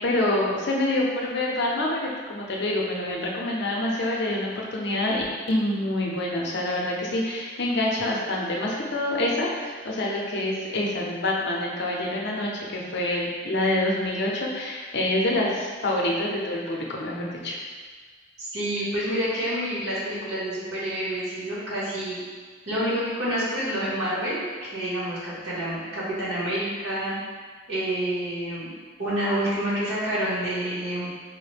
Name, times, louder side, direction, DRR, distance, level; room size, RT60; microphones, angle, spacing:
voice 1, 0.0-17.6, left 1 dB, 55° left, -2 dB, 0.6 m, -26 dB
voice 2, 18.4-22.2 22.6-27.2 27.7-28.7 29.0-31.1, right 1 dB, 90° right, -8 dB, 1.5 m, -28 dB
4.7 x 2.1 x 3.3 m, 1.5 s
head